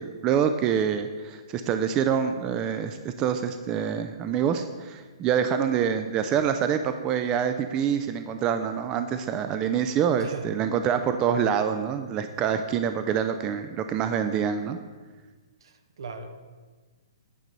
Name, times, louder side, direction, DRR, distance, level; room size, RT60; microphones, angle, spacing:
voice 1, 0.0-14.8, right 8 dB, 25° right, 9 dB, 0.4 m, -26 dB
voice 2, 10.1-10.5 15.6-16.4, right 5 dB, 70° right, 7 dB, 0.9 m, -39 dB
9.3 x 3.9 x 6.7 m, 1.4 s
hypercardioid pair, 130°, 3 cm